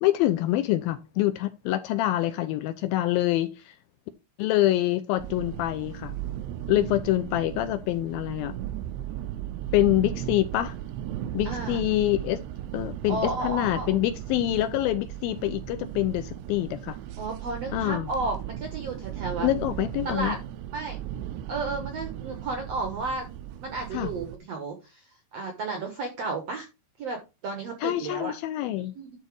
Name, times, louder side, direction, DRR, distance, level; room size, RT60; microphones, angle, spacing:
voice 1, 0.0-3.8 4.4-6.1 6.7-8.6 9.7-10.8 11.3-12.4 12.7-17.0 17.7-18.1 19.4-20.4 23.9-24.1 27.8-28.9, left 15 dB, 80° left, 2.1 m, -26 dB
sound 1, 5.2-24.4, right 11 dB, 90° right, 3.0 m, -36 dB
voice 2, 11.4-11.8 13.1-13.9 17.2-19.5 20.0-20.4 20.7-21.0 21.5-23.3 23.6-26.7 27.0-28.3 28.8-29.2, right 3 dB, 75° right, 1.5 m, -33 dB
11.0 x 3.9 x 4.7 m
omnidirectional pair, 4.7 m